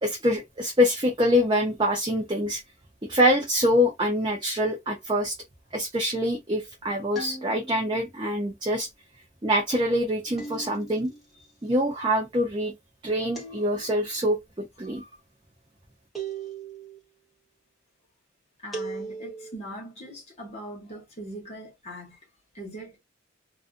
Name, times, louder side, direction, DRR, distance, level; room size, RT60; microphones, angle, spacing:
voice 1, 0.0-2.6 3.0-5.3 5.7-8.9 9.4-11.1 11.6-12.7 13.0-15.0, equal, 25° right, 0.6 m, -25 dB
sound 1, 7.2-8.0 10.4-11.2 13.3-14.2 16.2-17.0 18.7-19.6, right 4 dB, ahead, 0.9 m, -38 dB
voice 2, 18.6-22.2 22.5-23.0, right 1 dB, 30° left, 1.1 m, -40 dB
2.4 x 2.4 x 2.4 m
head